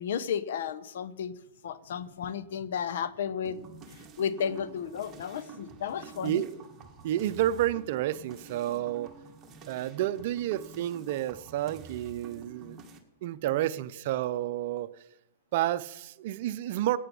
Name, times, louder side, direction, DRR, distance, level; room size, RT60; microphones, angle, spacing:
voice 1, 0.0-1.3 1.6-3.6 4.2-6.4, left 8 dB, 70° left, 0.9 m, -33 dB
sound 1, 3.4-13.0, right 4 dB, 20° right, 1.8 m, -49 dB
voice 2, 6.2-6.7 7.0-9.2 9.7-12.8 13.2-14.9 15.5-17.0, right 13 dB, 55° right, 0.6 m, -30 dB
16.5 x 8.5 x 5.5 m
hypercardioid pair, 125°, 0 cm